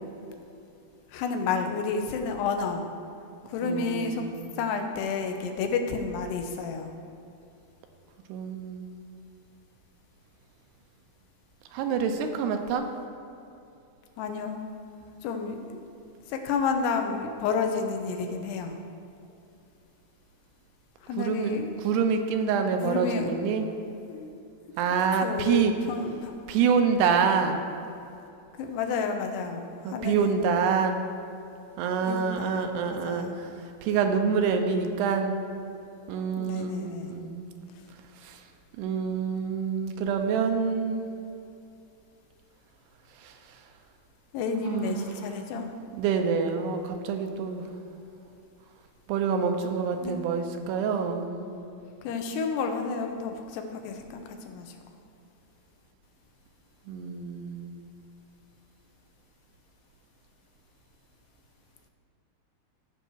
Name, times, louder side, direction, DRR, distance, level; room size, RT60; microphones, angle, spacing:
voice 1, 1.1-2.9 3.5-4.3 4.6-6.9 14.2-14.6 15.2-15.8 16.3-18.8 21.0-21.7 22.8-23.3 24.1-24.4 25.2-25.6 25.9-26.3 28.6-30.4 32.1-33.3 36.4-37.1 44.3-45.7 50.0-50.2 52.0-54.7, left 5 dB, 85° left, 5 dB, 2.9 m, -30 dB
voice 2, 3.6-4.5 8.3-8.9 11.7-12.9 21.2-23.7 24.8-25.7 26.5-27.6 29.8-31.0 31.8-33.5 33.8-35.4 36.1-37.5 38.2-38.4 38.8-41.1 43.2-43.4 44.6-45.4 46.0-47.7 49.1-51.5 56.9-57.8, right 6 dB, 85° right, 5 dB, 2.8 m, -27 dB
15.0 x 6.4 x 4.7 m, 2.6 s
omnidirectional pair, 4.7 m